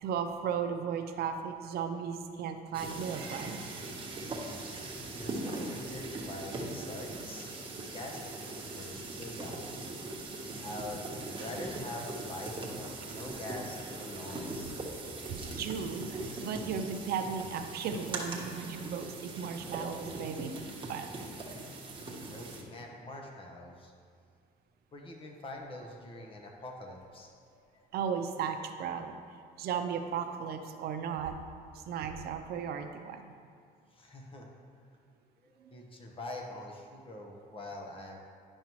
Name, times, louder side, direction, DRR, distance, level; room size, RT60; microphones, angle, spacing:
voice 1, 0.0-3.6 15.3-20.5 20.9-21.1 27.9-29.2 29.6-31.4 31.7-33.2, right 7 dB, 70° right, 6 dB, 0.6 m, -35 dB
sound 1, 2.7-22.6, right 2 dB, 30° right, 1.2 m, -40 dB
voice 2, 4.2-7.6 7.8-9.9 10.6-14.8 22.1-23.9 24.9-27.9 33.9-34.5 34.7-34.9 35.4-38.2, left 1 dB, 30° left, 0 dB, 1.2 m, -45 dB
10.5 x 5.4 x 3.1 m, 2.1 s
cardioid pair, 110°, 17 cm